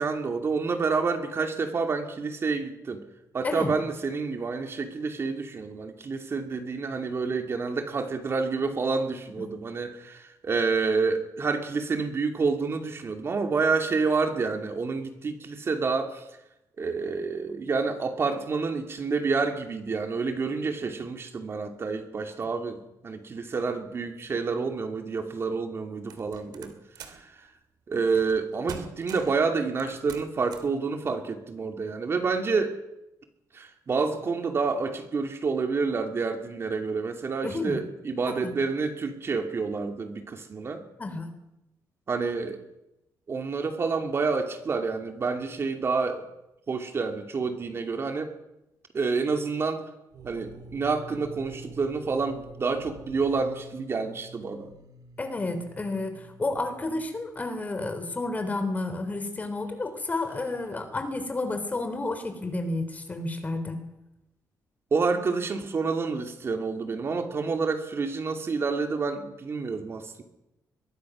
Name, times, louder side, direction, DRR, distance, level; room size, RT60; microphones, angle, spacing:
voice 1, 0.0-3.0 3.3-16.3 16.8-27.5 27.9-32.7 33.5-40.8 42.1-42.6 43.3-46.2 46.7-48.3 48.9-49.8 50.2-54.7 64.9-70.2, right 4 dB, 35° right, 5 dB, 2.5 m, -28 dB
sound 1, 26.1-27.3 28.2-28.4 28.7-29.4 29.8-30.8, right 7 dB, 85° right, 3.0 m, -43 dB
voice 2, 37.4-37.8 38.3-38.5 41.0-41.3 55.2-63.8, left 2 dB, 25° left, 8 dB, 3.5 m, -31 dB
sound 2, 50.1-57.8, right 3 dB, 60° right, 2.6 m, -48 dB
23.5 x 22.0 x 6.2 m, 0.91 s
cardioid pair, 140°, 7 cm